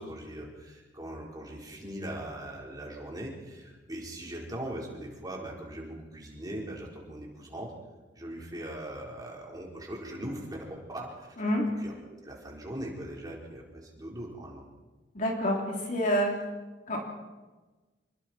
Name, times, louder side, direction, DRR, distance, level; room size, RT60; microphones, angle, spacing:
voice 1, 0.0-7.7 8.1-11.4 11.8-11.9 12.2-14.6, right 1 dB, 20° right, -2 dB, 4.4 m, -40 dB
voice 2, 11.4-11.7 15.1-16.4 16.9-17.0, equal, 45° left, -1 dB, 3.5 m, -27 dB
26.5 x 21.5 x 4.6 m, 1.2 s
head